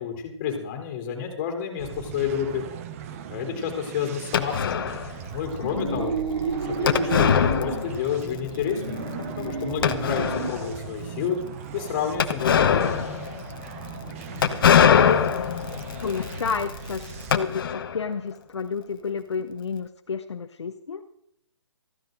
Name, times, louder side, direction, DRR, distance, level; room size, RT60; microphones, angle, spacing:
voice 1, 0.0-2.7 3.3-6.2 6.8-11.4 11.7-13.0, left 8 dB, 25° left, 3 dB, 3.6 m, -30 dB
sound 1, 1.8-17.4, right 8 dB, 30° right, 1.0 m, -39 dB
sound 2, 4.3-5.1 6.9-8.2 8.5-8.6 9.2-9.3 9.8-10.7 12.2-18.1, left 8 dB, 50° left, 1.2 m, -23 dB
voice 2, 5.6-6.1 14.8-15.3 16.0-21.0, left 6 dB, 70° left, 7 dB, 1.0 m, -30 dB
sound 3, 5.6-7.9 8.5-10.7, right 3 dB, 65° right, 4.3 m, -30 dB
16.0 x 14.5 x 3.9 m, 0.76 s
figure-of-eight pair, 145°, 15 cm